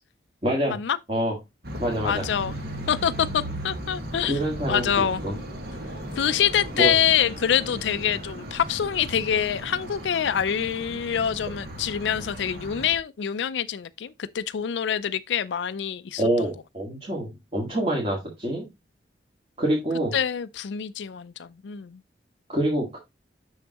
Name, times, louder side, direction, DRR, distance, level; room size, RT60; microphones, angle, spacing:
voice 1, 0.4-0.8 1.1-1.4 1.8-2.2 4.3-4.9 5.2-5.3 6.7-7.0 16.2-18.7 19.6-20.2 22.5-23.0, right 1 dB, 30° right, 1.9 m, -26 dB
sound 1, 1.6-13.0, right 1 dB, 55° right, 1.6 m, -36 dB
voice 2, 2.0-2.5 2.9-4.4 4.7-5.2 6.2-16.2 20.1-22.0, left 9 dB, 75° left, 0.4 m, -25 dB
6.8 x 6.4 x 2.9 m
head